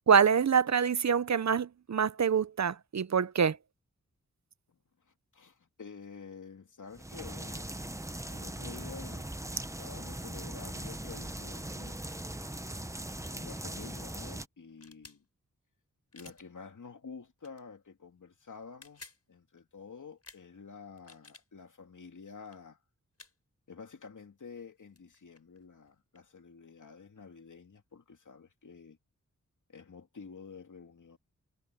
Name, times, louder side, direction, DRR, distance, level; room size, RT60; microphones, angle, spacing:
voice 1, 0.1-3.6, right 7 dB, 60° right, 0.7 m, -25 dB
voice 2, 5.3-7.8 8.2-9.3 9.8-12.2 13.3-15.2 16.1-19.0 19.3-22.8 23.7-29.0 29.7-31.2, left 5 dB, 70° left, 2.7 m, -49 dB
sound 1, 6.9-14.5, right 1 dB, 10° right, 1.0 m, -40 dB
sound 2, 14.7-15.2 16.1-16.4 17.4-17.6 18.6-19.2 20.2-20.4 20.9-21.5 22.4-22.6 23.2-23.3 24.7-24.8 25.0-26.3, left 3 dB, 50° left, 5.3 m, -53 dB
wide cardioid pair, 60°, 31 cm